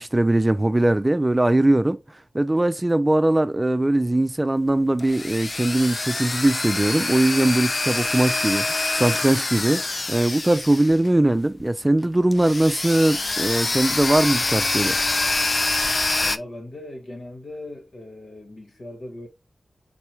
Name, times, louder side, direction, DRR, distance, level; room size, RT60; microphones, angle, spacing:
voice 1, 0.0-2.0 2.3-9.8 10.1-15.0, right 1 dB, 25° right, 0.5 m, -20 dB
sound 1, 4.7-11.3 11.6-11.7 12.3-16.4, left 2 dB, 50° left, 0.5 m, -25 dB
voice 2, 16.2-19.3, left 1 dB, 70° left, 1.7 m, -39 dB
4.6 x 3.0 x 3.2 m
cardioid pair, 45°, 0 cm